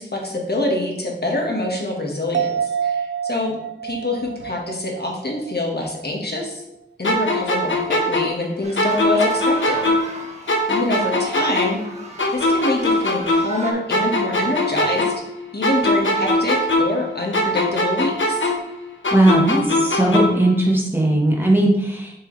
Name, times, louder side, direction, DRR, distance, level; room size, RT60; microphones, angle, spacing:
voice 1, 0.0-3.5 3.8-6.6 7.0-9.9 10.7-11.8 12.3-15.1 15.5-18.4, left 2 dB, 55° left, 0 dB, 1.6 m, -25 dB
sound 1, 2.3-6.0 6.4-6.5, right 8 dB, 75° right, 0.5 m, -28 dB
sound 2, 7.0-10.2 10.5-13.6 13.9-17.1 17.3-20.5, left 1 dB, 90° left, 1.0 m, -21 dB
sound 3, 8.6-13.7, right 2 dB, 35° right, 1.3 m, -37 dB
voice 2, 19.1-22.1, right 1 dB, 10° right, -2 dB, 1.5 m, -18 dB
7.3 x 4.7 x 3.3 m, 0.80 s
wide cardioid pair, 65°, 19 cm